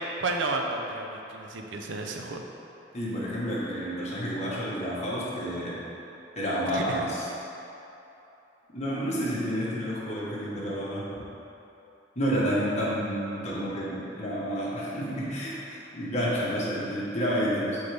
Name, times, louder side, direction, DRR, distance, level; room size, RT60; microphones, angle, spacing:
voice 1, 0.2-2.4 6.7-7.0, right 3 dB, 80° right, 3 dB, 0.6 m, -32 dB
voice 2, 2.9-5.8 6.3-7.2 8.7-11.2 12.1-17.8, equal, 40° left, -7 dB, 1.3 m, -30 dB
7.8 x 3.7 x 3.4 m, 3.0 s
head